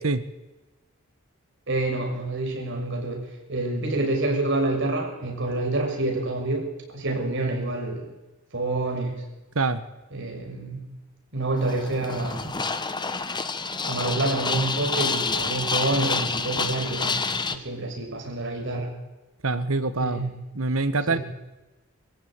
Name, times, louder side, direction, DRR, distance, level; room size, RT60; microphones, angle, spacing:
voice 1, 1.7-3.2 3.5-8.1 8.5-9.2 10.1-10.8 11.3-12.6 13.9-18.9 20.0-20.3 21.1-21.2, right 2 dB, 60° right, 3 dB, 6.5 m, -27 dB
sound 1, 11.6-17.6, left 4 dB, 20° left, 1.2 m, -28 dB
voice 2, 19.4-20.2 20.5-21.2, right 3 dB, 90° right, 12 dB, 1.4 m, -24 dB
23.5 x 15.0 x 9.1 m, 1.0 s
head